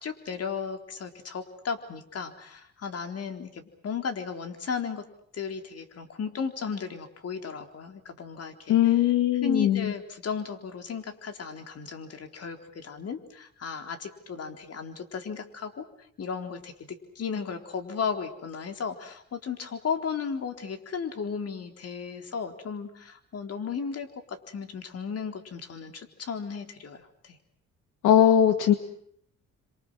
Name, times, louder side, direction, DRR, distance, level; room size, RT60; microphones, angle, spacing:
voice 1, 0.0-5.0 5.3-9.0 9.4-27.4, left 6 dB, 55° left, 6 dB, 3.9 m, -35 dB
voice 2, 8.7-9.9 28.0-28.7, left 10 dB, 90° left, 8 dB, 2.2 m, -20 dB
29.0 x 26.5 x 6.3 m, 0.67 s
cardioid pair, 90°, 30 cm